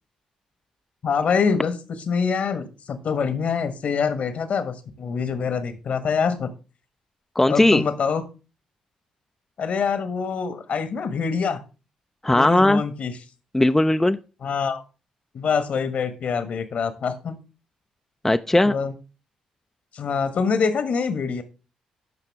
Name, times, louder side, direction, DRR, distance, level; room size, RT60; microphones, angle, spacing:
voice 1, 1.0-6.5 7.5-8.2 9.6-11.6 12.3-13.1 14.4-14.8 15.3-17.4 18.7-18.9 19.9-21.4, left 6 dB, 55° left, 11 dB, 1.3 m, -25 dB
voice 2, 7.4-7.8 12.2-12.8 13.5-14.2 18.2-18.8, left 1 dB, 10° left, 9 dB, 0.5 m, -18 dB
13.5 x 5.7 x 3.5 m, 0.32 s
hypercardioid pair, 45°, 3 cm